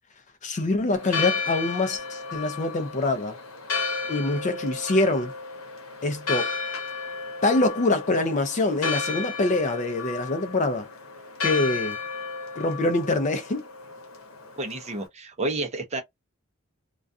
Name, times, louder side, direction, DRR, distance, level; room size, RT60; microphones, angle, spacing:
voice 1, 0.4-3.4 4.1-5.3 6.0-6.5 7.4-10.9 11.4-12.0 12.6-13.6, left 2 dB, 35° left, 0.4 m, -25 dB
Church bell, 0.9-15.0, left 5 dB, 85° left, 0.9 m, -33 dB
voice 2, 14.6-16.0, right 2 dB, 30° right, 0.6 m, -30 dB
2.3 x 2.2 x 2.5 m
head